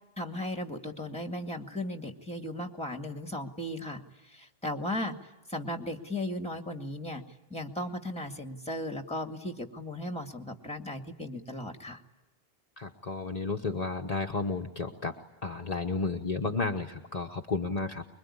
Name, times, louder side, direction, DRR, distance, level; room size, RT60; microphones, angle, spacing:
voice 1, 0.2-4.0 4.3-5.2 5.5-7.2 7.5-12.0, left 1 dB, 5° left, 5 dB, 2.0 m, -36 dB
voice 2, 12.8-15.2 15.4-18.0, left 3 dB, 40° left, 2 dB, 1.1 m, -32 dB
25.0 x 22.5 x 9.8 m, 1.1 s
omnidirectional pair, 1.0 m